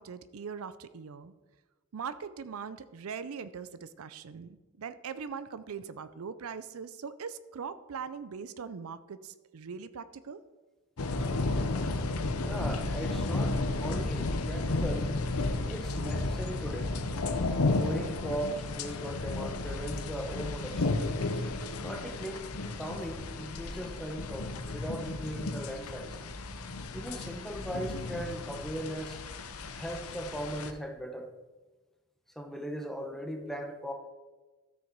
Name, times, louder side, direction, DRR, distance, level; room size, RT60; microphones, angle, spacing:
voice 1, 0.0-1.3 1.9-10.4, right 6 dB, 70° right, 13 dB, 0.5 m, -41 dB
sound 1, 11.0-30.7, left 2 dB, 90° left, 0.8 m, -33 dB
voice 2, 12.4-15.1 15.6-16.9 17.7-21.0 21.8-22.5 22.8-26.2 26.9-29.2 29.7-31.3 32.4-33.9, equal, ahead, 4 dB, 1.0 m, -38 dB
13.0 x 6.4 x 4.6 m, 1.2 s
head